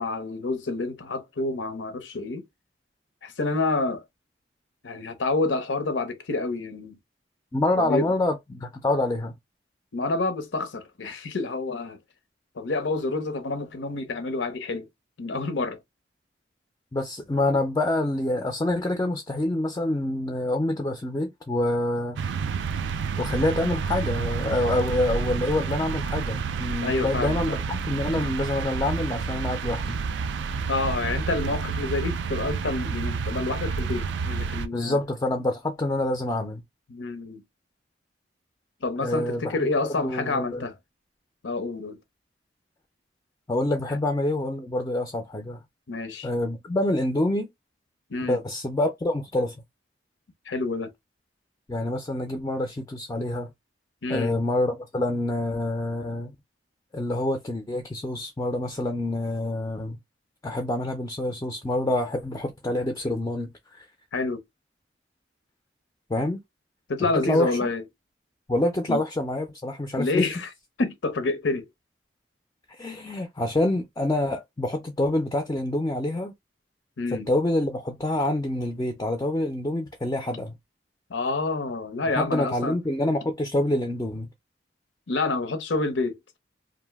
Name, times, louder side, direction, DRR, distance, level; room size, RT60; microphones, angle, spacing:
voice 1, 0.0-2.4 3.2-4.0 4.8-7.0 7.8-8.1 9.9-12.0 12.6-14.9 15.2-15.8 26.8-27.6 30.7-35.0 36.9-37.4 38.8-40.8 41.4-42.0 45.9-46.3 48.1-48.4 50.5-50.9 54.0-54.3 64.1-64.4 66.9-67.8 68.9-69.0 70.0-70.5 70.8-71.7 77.0-77.3 81.1-82.7 85.1-86.2, left 3 dB, 85° left, 0.7 m, -28 dB
voice 2, 7.5-9.3 16.9-22.2 23.2-30.0 34.7-36.6 39.0-40.7 43.5-45.6 46.2-47.5 48.2-49.5 51.7-53.5 54.1-56.3 56.9-60.0 60.4-63.8 66.1-66.4 67.1-67.7 68.5-70.3 72.8-76.3 77.1-80.5 82.2-84.3, left 1 dB, 20° left, 0.4 m, -27 dB
sound 1, 22.2-34.7, right 5 dB, 75° right, 0.3 m, -29 dB
2.5 x 2.0 x 3.3 m
head